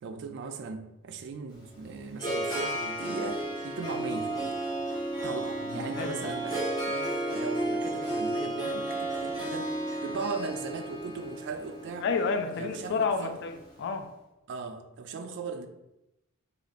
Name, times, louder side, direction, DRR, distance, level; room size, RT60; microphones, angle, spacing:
voice 1, 0.0-4.6 5.2-9.8 10.0-12.1 12.5-13.4 14.5-15.7, right 4 dB, 55° right, 7 dB, 0.3 m, -38 dB
Harp, 1.5-13.7, right 1 dB, 20° left, 0.9 m, -33 dB
voice 2, 5.7-6.3 12.0-14.1, left 4 dB, 55° left, 7 dB, 0.3 m, -30 dB
2.5 x 2.4 x 3.9 m, 0.91 s
head